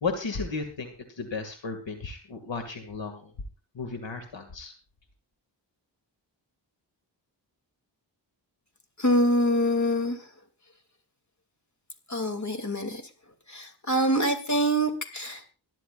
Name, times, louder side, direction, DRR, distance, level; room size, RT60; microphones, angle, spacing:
voice 1, 0.0-3.3 3.7-4.7, left 4 dB, 80° left, 5 dB, 2.3 m, -34 dB
voice 2, 9.0-10.3 12.1-13.0 13.5-15.5, equal, 40° left, 5 dB, 2.9 m, -25 dB
25.5 x 10.5 x 2.5 m, 0.30 s
cardioid pair, 60°, 44 cm